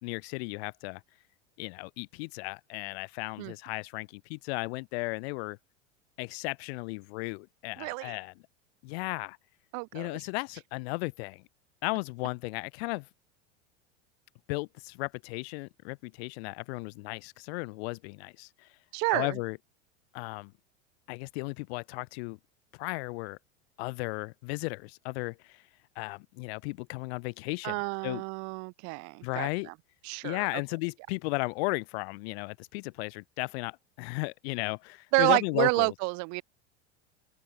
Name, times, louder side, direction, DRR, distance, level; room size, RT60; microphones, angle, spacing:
voice 1, 0.0-1.0 1.6-5.6 6.2-8.3 8.8-9.4 9.9-11.4 11.8-13.1 14.5-18.7 19.1-19.6 20.1-20.5 21.1-22.4 22.7-23.4 23.8-25.6 26.0-28.2 29.2-29.7 30.2-35.9, left 27 dB, 65° left, 3.6 m, -35 dB
voice 2, 7.8-8.2 9.7-10.1 18.9-19.4 27.6-29.7 30.0-30.4 35.1-36.4, right 32 dB, 55° right, 1.7 m, -29 dB
open air
hypercardioid pair, 95°, 34 cm